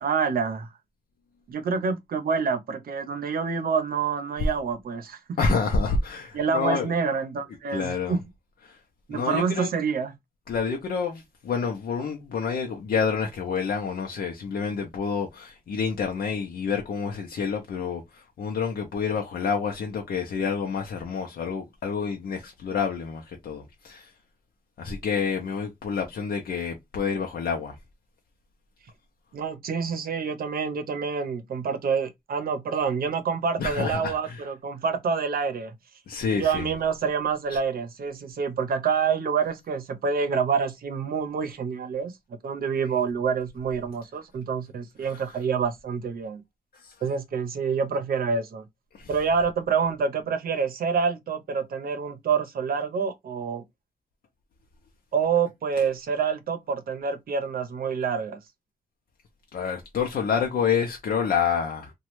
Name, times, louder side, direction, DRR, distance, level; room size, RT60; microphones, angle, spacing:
voice 1, 0.0-0.7 1.5-5.2 5.5-5.6 6.3-8.2 9.1-10.1 29.3-35.7 36.3-42.1 42.4-46.4 47.0-48.6 49.1-53.6 55.1-58.4, right 6 dB, 80° right, 0.7 m, -27 dB
voice 2, 5.4-6.9 7.7-8.2 8.7-8.8 9.1-9.7 10.5-24.1 24.8-27.8 33.6-34.4 36.1-36.7 45.0-45.2 46.8-46.9 48.9-49.1 59.5-61.9, left 5 dB, 85° left, 0.6 m, -28 dB
3.1 x 2.3 x 3.0 m
wide cardioid pair, 170°, 15 cm